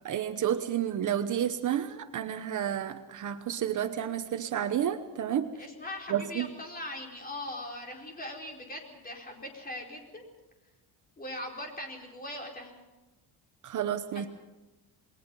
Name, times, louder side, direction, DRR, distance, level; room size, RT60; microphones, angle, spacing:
voice 1, 0.0-5.5 6.1-6.5 13.6-14.3, right 10 dB, 45° right, 8 dB, 1.1 m, -30 dB
voice 2, 5.6-10.2 11.2-12.8 14.1-14.3, left 1 dB, 20° left, 1 dB, 4.5 m, -40 dB
28.0 x 21.0 x 5.5 m, 1.1 s
cardioid pair, 150°, 40 cm